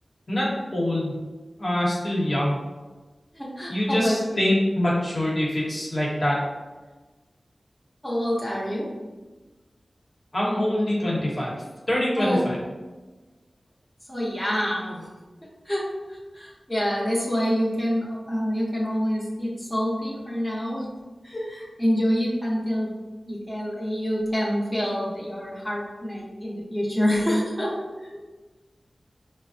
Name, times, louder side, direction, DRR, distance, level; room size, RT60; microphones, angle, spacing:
voice 1, 0.3-1.2 1.6-2.6 3.7-6.4 10.3-11.5 11.9-12.6, left 1 dB, 50° left, -5 dB, 1.0 m, -24 dB
voice 2, 3.3-4.2 8.0-8.9 12.2-12.4 14.1-15.1 15.7-20.9 21.2-22.9 23.3-27.7, equal, 5° left, -6 dB, 0.7 m, -26 dB
4.5 x 2.0 x 2.6 m, 1.2 s
wide cardioid pair, 75°, 0 cm